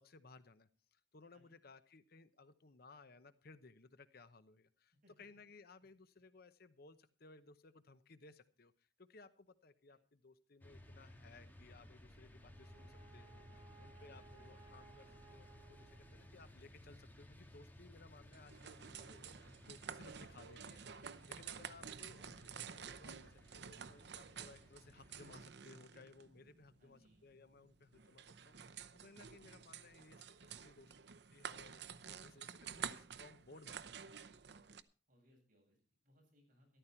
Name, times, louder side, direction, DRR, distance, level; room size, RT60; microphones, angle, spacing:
voice 1, 0.0-30.9 31.3-31.8 32.1-34.1, left 3 dB, 55° left, 12 dB, 0.9 m, -61 dB
sound 1, 10.6-25.4, equal, 10° left, 1.7 m, -59 dB
Brass instrument, 12.2-16.7, right 4 dB, 15° right, 5.3 m, -64 dB
voice 2, 13.9-14.6 26.8-27.3 35.1-36.8, equal, 45° right, 1 dB, 7.8 m, -71 dB
sound 2, 18.3-34.8, right 7 dB, 60° right, 0.7 m, -51 dB
13.5 x 12.5 x 4.4 m, 0.37 s
head